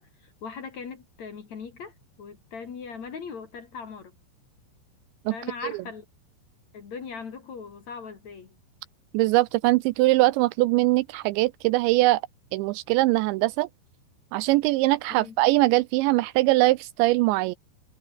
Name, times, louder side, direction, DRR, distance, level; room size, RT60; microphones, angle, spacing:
voice 1, 0.0-4.1 5.3-6.0 6.7-8.5 15.2-15.4, left 5 dB, 45° left, 3.0 m, -39 dB
voice 2, 9.1-12.2 12.5-13.7 14.3-17.6, right 20 dB, 80° right, 2.7 m, -22 dB
omnidirectional pair, 5.5 m